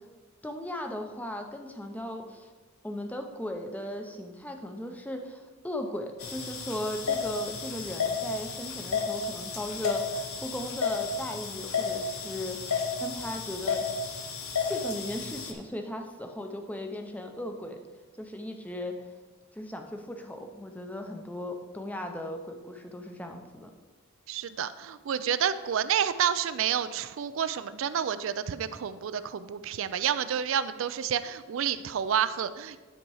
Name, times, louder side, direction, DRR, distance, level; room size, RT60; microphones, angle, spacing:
voice 1, 0.4-2.5 2.8-14.2 14.5-17.8 18.2-19.0 19.5-23.7, left 1 dB, 5° left, 4 dB, 0.6 m, -37 dB
sound 1, 6.2-15.5, left 5 dB, 85° left, 0.9 m, -32 dB
voice 2, 24.3-32.8, right 8 dB, 65° right, 13 dB, 0.4 m, -29 dB
10.0 x 4.3 x 4.8 m, 1.3 s
head